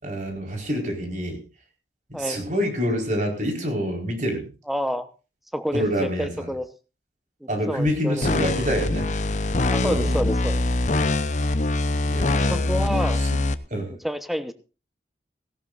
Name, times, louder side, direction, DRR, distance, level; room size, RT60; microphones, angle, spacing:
voice 1, 0.0-1.4 2.1-4.5 5.7-6.5 7.5-9.1 9.8-10.2 11.9-12.8 13.2-13.3 13.7-14.0, equal, 45° right, 3 dB, 4.5 m, -27 dB
voice 2, 4.7-5.1 5.5-6.7 7.4-8.2 9.7-10.6 12.4-13.2 14.0-14.5, equal, ahead, 10 dB, 0.9 m, -28 dB
sound 1, 8.2-13.5, left 2 dB, 45° left, 0.8 m, -23 dB
17.5 x 17.0 x 2.5 m, 0.32 s
head